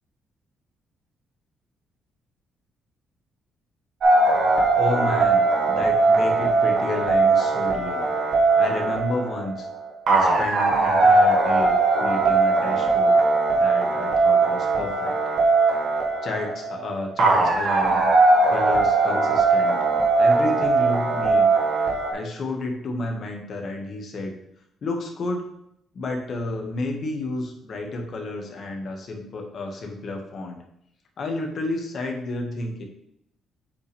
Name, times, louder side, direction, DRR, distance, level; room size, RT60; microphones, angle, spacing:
sound 1, 4.0-22.1, right 3 dB, 65° right, 1.7 m, -20 dB
voice 1, 4.7-8.1 8.5-9.7 10.1-13.2 13.5-15.2 16.2-18.0 18.5-19.8 20.2-21.5 22.1-24.3 24.8-25.5 25.9-30.6 31.2-32.8, left 2 dB, 55° left, 2 dB, 1.7 m, -31 dB
8.2 x 5.2 x 3.4 m, 0.74 s
cardioid pair, 90°, 0 cm